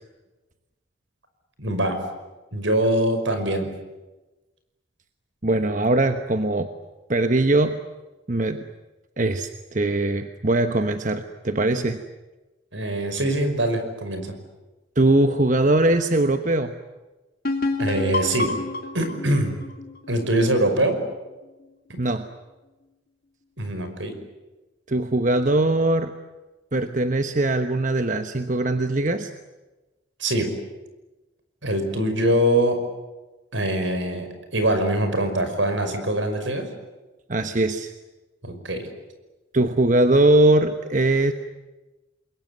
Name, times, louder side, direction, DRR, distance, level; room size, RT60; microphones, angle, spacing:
voice 1, 1.6-2.0 2.5-3.7 12.7-14.3 17.8-18.5 18.9-19.6 20.1-21.0 21.9-22.0 23.6-24.1 30.2-30.5 31.6-32.8 33.5-36.7 38.4-38.9, right 1 dB, 75° right, 7 dB, 5.4 m, -23 dB
voice 2, 5.4-6.7 7.1-7.8 8.3-8.6 9.2-12.0 15.0-16.7 22.0-22.2 24.9-26.1 26.7-29.3 37.3-37.9 39.5-41.3, right 2 dB, 40° right, 8 dB, 1.1 m, -21 dB
sound 1, 17.4-21.0, left 3 dB, 50° left, 2.9 m, -28 dB
28.0 x 22.0 x 9.5 m, 1.1 s
head